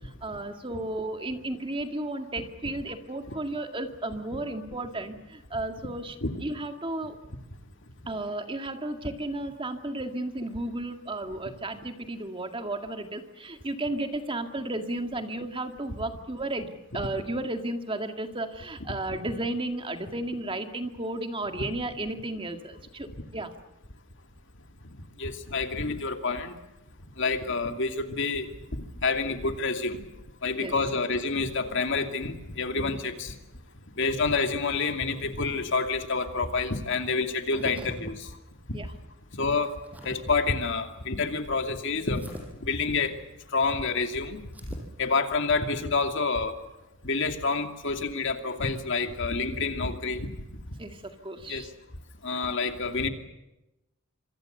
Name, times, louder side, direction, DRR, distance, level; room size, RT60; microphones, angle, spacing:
voice 1, 0.2-7.2 8.1-23.5 30.6-30.8 37.5-37.7 38.7-38.9 50.8-51.7, right 2 dB, 25° right, 6 dB, 2.1 m, -33 dB
voice 2, 24.8-26.6 27.2-30.0 30.4-33.3 34.0-38.3 39.3-42.2 42.6-43.2 43.5-44.4 45.0-46.6 47.0-50.3 51.5-51.7 52.2-53.1, left 4 dB, 60° left, 6 dB, 2.6 m, -28 dB
sound 1, 37.4-38.0 39.4-40.2 42.1-42.5 44.4-44.9, equal, 5° right, 6.1 m, -44 dB
26.5 x 26.0 x 6.8 m, 0.95 s
head